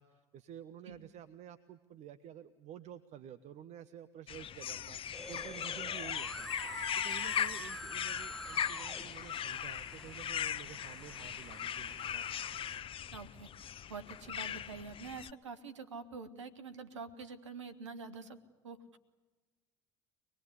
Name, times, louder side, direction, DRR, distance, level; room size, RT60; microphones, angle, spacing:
voice 1, 0.0-5.0 5.3-6.5 6.9-12.2, right 10 dB, 50° right, 12 dB, 1.0 m, -51 dB
sound 1, 4.3-15.3, left 9 dB, 35° left, 0.7 m, -39 dB
sound 2, 5.1-12.8, left 1 dB, 5° left, 1.4 m, -46 dB
voice 2, 13.1-13.5 13.9-18.4 18.6-19.0, right 4 dB, 90° right, 8 dB, 1.4 m, -46 dB
24.0 x 20.0 x 9.7 m, 1.2 s
hypercardioid pair, 70°, 15 cm